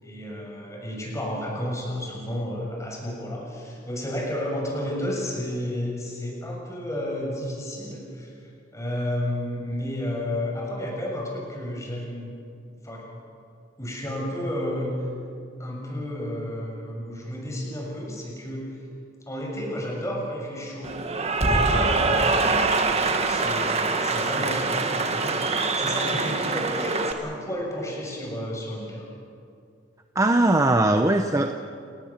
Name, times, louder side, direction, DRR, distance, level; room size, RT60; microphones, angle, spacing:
voice 1, 0.0-12.3 12.8-13.1 13.8-14.9 15.6-18.8 19.3-20.9 21.5-29.1, left 1 dB, 15° left, -1 dB, 6.7 m, -32 dB
Cheering / Applause, 20.8-27.1, right 3 dB, 35° right, 1.8 m, -24 dB
voice 2, 30.2-31.5, right 2 dB, 15° right, 6 dB, 0.8 m, -20 dB
30.0 x 18.5 x 7.3 m, 2.3 s
head